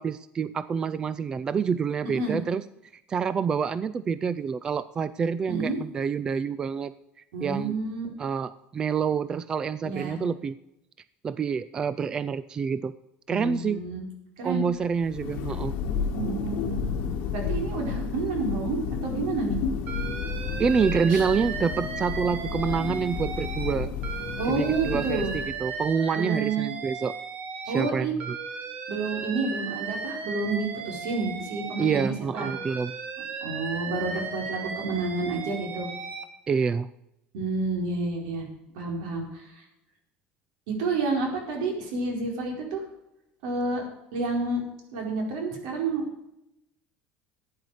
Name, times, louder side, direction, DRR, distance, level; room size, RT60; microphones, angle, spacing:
voice 1, 0.0-2.6 3.1-6.9 7.4-7.7 8.2-10.5 11.2-12.9 13.3-13.8 14.4-15.7 20.6-23.9 24.5-27.2 27.6-28.4 31.8-32.9 36.5-36.9, right 6 dB, 20° right, 16 dB, 0.3 m, -27 dB
voice 2, 7.3-8.1 9.8-10.2 13.3-14.0 14.4-14.7 16.1-16.9 17.3-19.6 21.1-21.2 24.4-25.3 26.1-26.7 27.7-28.1 28.9-32.5 33.4-35.9 37.3-38.4 38.7-39.6 40.7-42.8 43.4-43.8 44.1-44.6 44.9-46.0, right 3 dB, 80° right, 2 dB, 4.5 m, -29 dB
Thunder, 14.8-25.9, left 6 dB, 60° left, 1.7 m, -32 dB
Alarm, 19.9-23.7 24.0-27.9 28.2-32.1 32.4-36.2, right 5 dB, 40° right, 1.4 m, -36 dB
15.0 x 9.6 x 4.9 m, 0.84 s
cardioid pair, 160°, 4 cm